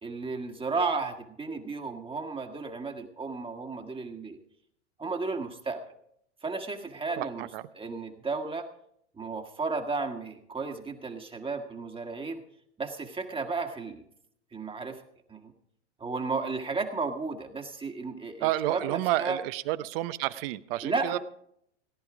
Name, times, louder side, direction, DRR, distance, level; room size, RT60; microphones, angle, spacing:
voice 1, 0.0-4.4 5.0-5.8 6.4-7.5 7.7-8.6 9.2-12.4 12.8-14.0 14.5-15.0 15.3-15.5 16.0-19.4 20.8-21.2, right 4 dB, 15° right, 4 dB, 1.6 m, -33 dB
voice 2, 7.2-7.6 18.4-21.2, right 15 dB, 50° right, 14 dB, 0.8 m, -30 dB
18.5 x 10.5 x 4.9 m, 0.71 s
hypercardioid pair, 105°, 36 cm